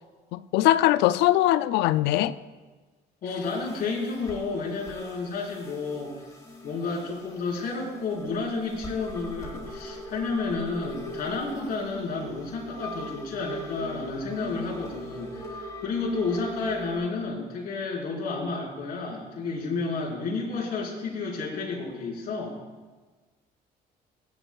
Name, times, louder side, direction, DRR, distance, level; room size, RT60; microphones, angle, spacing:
voice 1, 0.3-2.4, left 14 dB, 85° left, 0.4 m, -21 dB
voice 2, 3.2-6.1 6.6-22.6, left 4 dB, 60° left, 4.2 m, -31 dB
sound 1, 3.4-17.0, equal, 20° left, 4.0 m, -41 dB
17.5 x 11.5 x 2.3 m
cardioid pair, 110°, 17 cm